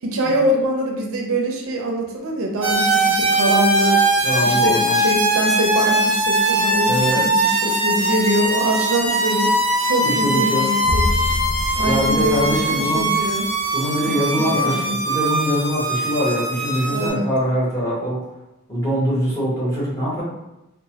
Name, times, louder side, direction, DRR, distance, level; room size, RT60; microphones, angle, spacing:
voice 1, 0.0-4.0 4.4-9.6 9.8-11.3 11.8-13.5 14.4-15.0 16.9-17.3, right 1 dB, 65° right, 1 dB, 0.5 m, -23 dB
sound 1, 2.6-17.1, right 1 dB, 30° right, 0.7 m, -21 dB
voice 2, 4.2-5.0 6.9-7.2 10.0-10.7 11.8-13.1 13.7-18.2 18.7-20.2, equal, 15° left, -8 dB, 1.0 m, -23 dB
sound 2, 10.8-13.5, left 1 dB, 45° left, 0.3 m, -26 dB
3.0 x 2.1 x 2.8 m, 0.92 s
head